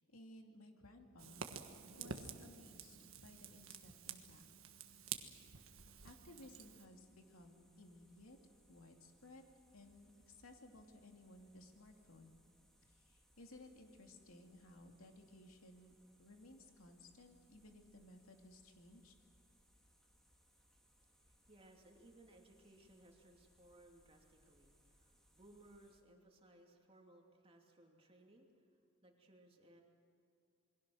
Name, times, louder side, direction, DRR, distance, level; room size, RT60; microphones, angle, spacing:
voice 1, 0.0-1.4 2.0-4.4 6.0-8.4 8.7-9.4 9.7-12.4 12.8-19.1, left 1 dB, 90° left, 3 dB, 2.6 m, -59 dB
Fire, 1.2-6.9, right 6 dB, 75° right, 1.5 m, -50 dB
sound 1, 6.4-26.0, equal, ahead, 2.5 m, -72 dB
voice 2, 20.8-28.7 29.0-29.8, right 1 dB, 25° right, 1 dB, 2.8 m, -64 dB
28.0 x 22.0 x 6.3 m, 2.5 s
head